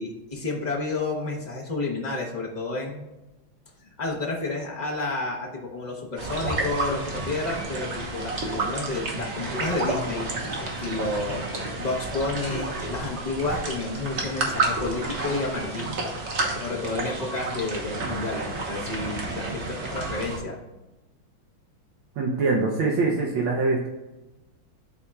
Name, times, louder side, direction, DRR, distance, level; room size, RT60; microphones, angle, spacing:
voice 1, 0.0-3.1 3.8-11.5 11.8-16.1 16.6-20.6, left 3 dB, 70° left, -2 dB, 0.4 m, -31 dB
sound 1, 6.2-20.4, right 2 dB, 45° right, 1.0 m, -30 dB
voice 2, 22.2-23.9, right 3 dB, 70° right, -2 dB, 1.5 m, -23 dB
11.5 x 4.2 x 2.3 m, 1.1 s
omnidirectional pair, 2.4 m